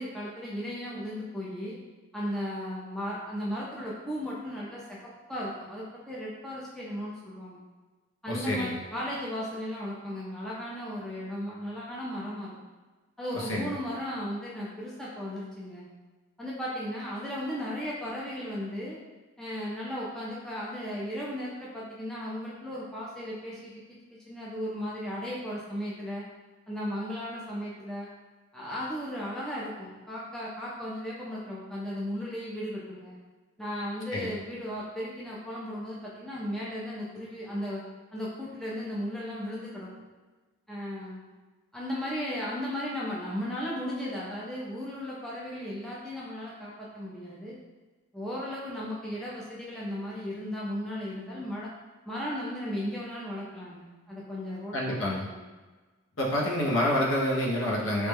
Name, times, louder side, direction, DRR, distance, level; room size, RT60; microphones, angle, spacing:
voice 1, 0.0-1.8 2.1-5.0 5.3-7.6 8.2-12.5 13.2-15.9 16.4-19.0 19.4-23.7 24.3-26.2 26.7-28.1 28.5-33.2 33.6-37.8 38.1-39.9 40.7-41.3 41.7-47.6 48.1-51.7 52.1-55.0 55.2-55.4, equal, ahead, -7 dB, 0.4 m, -35 dB
voice 2, 8.3-8.8 13.3-13.7 34.1-34.3 54.7-55.3 56.2-58.1, left 1 dB, 70° left, -3 dB, 0.6 m, -28 dB
3.2 x 2.1 x 3.3 m, 1.3 s
head